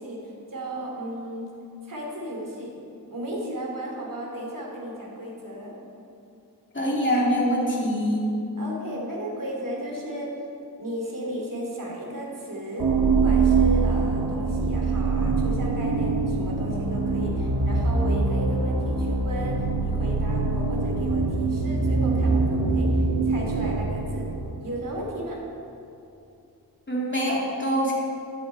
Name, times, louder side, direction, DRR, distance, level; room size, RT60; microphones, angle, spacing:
voice 1, 0.0-1.5 1.8-2.7 3.1-5.7 8.6-10.3 10.8-12.9 13.1-24.3 24.6-25.4, right 1 dB, 55° right, -2 dB, 3.0 m, -34 dB
voice 2, 6.7-8.3 26.9-27.9, equal, 30° left, -4 dB, 2.9 m, -24 dB
sound 1, 12.8-24.7, right 3 dB, 85° right, 1.5 m, -24 dB
12.0 x 10.5 x 4.5 m, 2.8 s
wide cardioid pair, 55°, 38 cm